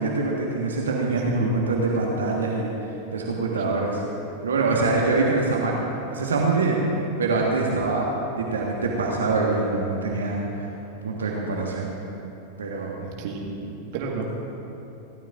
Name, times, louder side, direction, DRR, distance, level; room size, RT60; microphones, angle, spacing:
voice 1, 0.0-2.7 3.1-4.0 4.4-5.8 6.1-6.8 7.2-8.1 8.4-10.6 11.0-11.9 12.6-13.0, right 3 dB, 70° right, -2 dB, 1.7 m, -24 dB
voice 2, 1.1-1.5 13.2-14.2, right 5 dB, 50° right, -1 dB, 1.8 m, -31 dB
29.0 x 13.0 x 2.7 m, 3.0 s
figure-of-eight pair, 90°, 0 cm